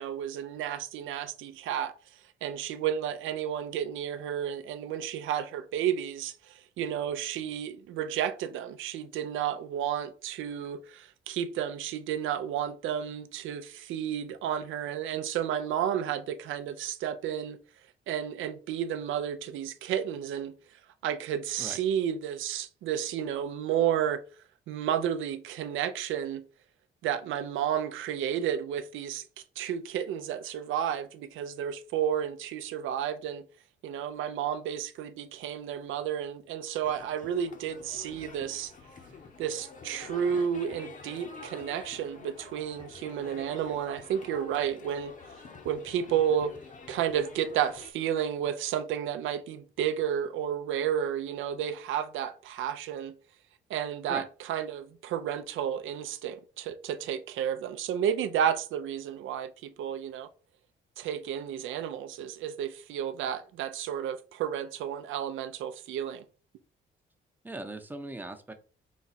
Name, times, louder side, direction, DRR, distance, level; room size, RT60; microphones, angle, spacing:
voice 1, 0.0-1.9 2.4-17.6 18.1-20.5 21.0-24.2 24.7-26.4 27.0-29.2 29.6-33.5 33.8-38.7 39.4-45.1 45.6-46.5 46.9-53.2 53.7-60.3 61.0-66.2, right 9 dB, 80° right, 0.5 m, -32 dB
sound 1, 36.8-47.9, left 4 dB, 40° left, 0.8 m, -48 dB
voice 2, 67.4-68.5, right 2 dB, 10° right, 0.6 m, -39 dB
4.0 x 2.3 x 4.1 m
cardioid pair, 90°, 20 cm